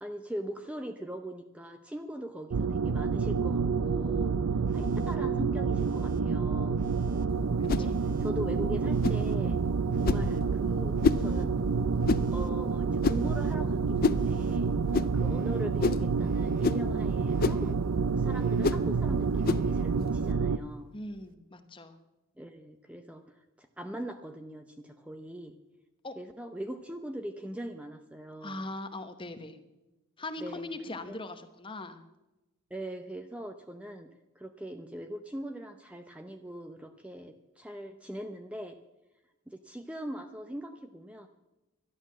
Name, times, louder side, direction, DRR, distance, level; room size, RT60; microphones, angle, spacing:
voice 1, 0.0-4.4 4.7-6.8 7.7-7.9 8.2-9.6 9.9-11.5 11.8-11.9 12.3-14.7 15.1-17.8 18.1-20.9 22.4-23.2 23.6-25.6 26.2-28.6 30.4-31.2 32.7-34.1 34.4-38.8 39.5-41.3, equal, 5° right, 6 dB, 0.6 m, -41 dB
sound 1, 2.5-20.6, right 5 dB, 85° right, 0.5 m, -28 dB
Telephone, 4.7-5.2 5.7-6.3 6.7-7.3 7.8-8.4 8.8-9.4 9.9-10.4 10.9-11.5 12.0-12.5 13.0-13.6 14.1-15.7 15.9-16.7 17.2-17.7 18.3-18.8 19.3-19.8 21.0-21.1, right 1 dB, 40° right, 0.8 m, -52 dB
voice 2, 7.6-7.9 20.9-21.9 26.0-26.2 28.4-29.6 30.2-32.0, left 2 dB, 25° left, 9 dB, 1.0 m, -40 dB
sound 2, 7.7-7.9 9.0-9.2 10.0-10.3 11.0-11.3 12.1-12.3 13.0-13.3 14.0-14.2 14.9-15.1 15.8-16.1 16.6-16.8 17.4-17.6 18.6-18.8 19.4-19.7, left 4 dB, 45° left, 0.4 m, -27 dB
12.0 x 11.5 x 7.4 m, 1.0 s
head